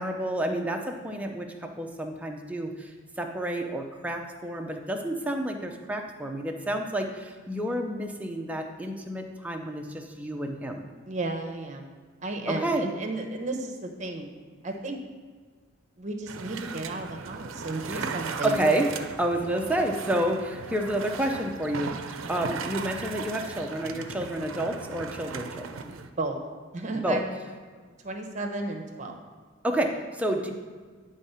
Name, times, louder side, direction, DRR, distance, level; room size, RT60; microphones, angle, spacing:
voice 1, 0.0-10.9 12.5-12.8 17.9-18.1 18.4-18.9 19.2-25.9 26.9-27.2 29.6-30.5, right 1 dB, 5° right, 2 dB, 0.6 m, -30 dB
voice 2, 11.1-11.9 12.2-14.3 14.6-15.0 16.0-18.6 26.2-26.4 26.7-27.2 28.0-29.1, right 2 dB, 35° right, 3 dB, 0.9 m, -33 dB
sound 1, 16.3-26.1, right 5 dB, 80° right, 0.5 m, -37 dB
9.5 x 3.6 x 5.6 m, 1.5 s
head